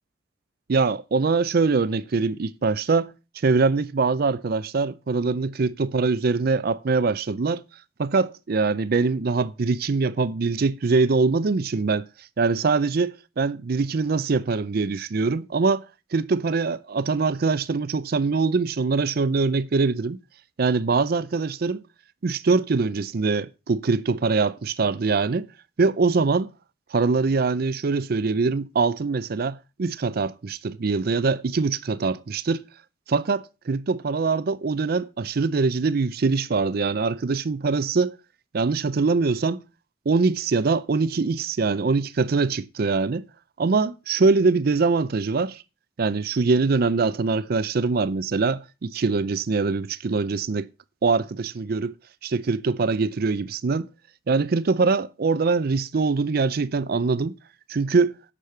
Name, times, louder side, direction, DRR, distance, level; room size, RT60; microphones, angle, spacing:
voice 1, 0.7-3.1 3.4-7.6 8.0-12.0 12.4-15.8 16.1-20.2 20.6-21.8 22.2-25.5 25.8-26.5 26.9-32.7 33.1-38.1 38.5-39.6 40.1-43.3 43.6-45.6 46.0-50.7 51.0-51.9 52.2-53.9 54.3-57.3 57.7-58.2, right 4 dB, 55° right, 0.5 m, -23 dB
9.8 x 6.5 x 5.7 m
head